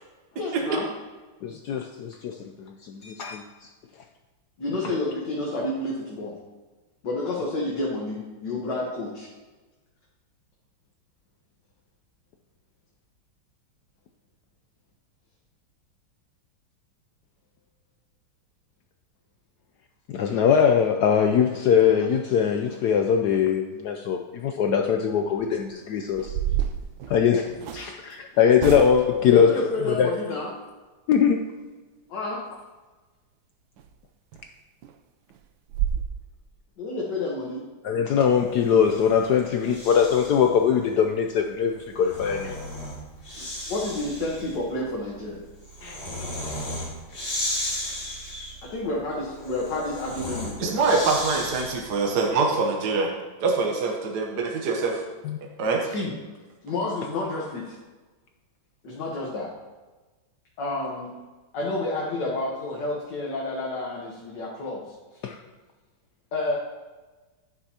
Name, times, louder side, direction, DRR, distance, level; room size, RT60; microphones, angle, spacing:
voice 1, 0.4-0.9 4.6-6.3 7.0-9.3 29.2-30.5 32.1-32.4 36.8-37.6 43.3-45.4 48.6-50.7 55.8-56.1 56.6-57.8 58.8-59.5 60.6-61.1 61.5-64.8 66.3-66.6, left 2 dB, 60° left, -4 dB, 1.8 m, -29 dB
voice 2, 1.4-2.3 2.7-3.4 20.1-26.3 27.1-29.5 29.9-30.1 31.1-31.4 37.8-42.6 45.8-46.0 55.2-55.4 65.2-65.4, left 7 dB, 75° left, 4 dB, 0.9 m, -22 dB
sound 1, 25.3-25.6 26.1-27.9 28.6-29.2 33.8-33.9 34.3-34.4 34.8-34.9 35.3-35.4 35.7-36.0, right 10 dB, 75° right, 1.2 m, -29 dB
Breathing, 38.5-40.5 41.7-52.0, left 1 dB, 30° left, 2.4 m, -35 dB
voice 3, 50.6-53.1 53.4-55.0 55.6-55.9, right 4 dB, 60° right, 1 dB, 1.4 m, -24 dB
11.5 x 9.2 x 2.8 m, 1.3 s
omnidirectional pair, 2.3 m